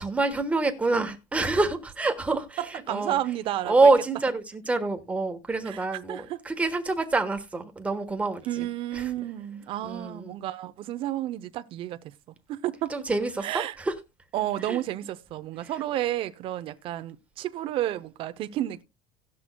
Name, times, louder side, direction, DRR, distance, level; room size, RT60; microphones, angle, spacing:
voice 1, 0.0-2.6 2.9-3.2 3.6-8.7 8.9-9.0 9.8-10.3 12.9-13.9 14.7-14.8, right 3 dB, 10° right, 1.2 m, -26 dB
voice 2, 2.6-3.9 5.7-6.4 8.5-12.2 12.5-13.0 13.4-13.8 14.3-18.8, right 13 dB, 45° right, 0.6 m, -31 dB
18.0 x 6.1 x 2.2 m
cardioid pair, 150°, 13 cm